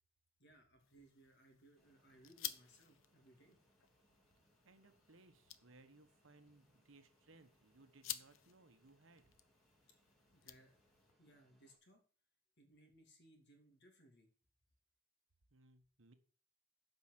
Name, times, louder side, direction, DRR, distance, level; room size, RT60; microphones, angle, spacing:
voice 1, 0.4-3.6 10.3-10.8 11.2-12.0 12.6-14.3, right 1 dB, 55° left, 3 dB, 2.8 m, -66 dB
sound 1, 0.8-11.1, left 12 dB, 70° left, 0.7 m, -53 dB
Fixed-wing aircraft airplane, 1.8-11.8, right 1 dB, ahead, 2.2 m, -77 dB
voice 2, 4.6-9.3 15.5-16.1, right 2 dB, 70° right, 9 dB, 1.2 m, -65 dB
8.1 x 5.5 x 7.5 m, 0.41 s
head